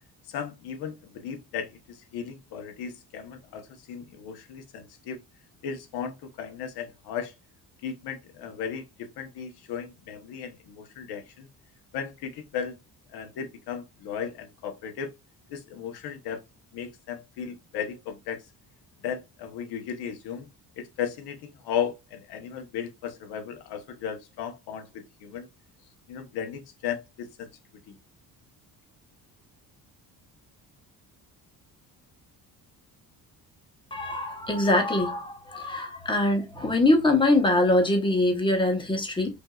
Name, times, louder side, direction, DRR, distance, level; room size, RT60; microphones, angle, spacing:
voice 1, 0.3-5.2 5.6-7.3 7.8-11.5 11.9-12.8 13.1-15.1 15.5-16.4 16.7-18.4 19.0-20.5 20.8-25.5 26.1-27.5 27.9-28.0, left 8 dB, 85° left, 1.1 m, -35 dB
voice 2, 33.9-39.4, left 2 dB, 15° left, 1.0 m, -23 dB
5.2 x 2.7 x 2.3 m
cardioid pair, 155°, 38 cm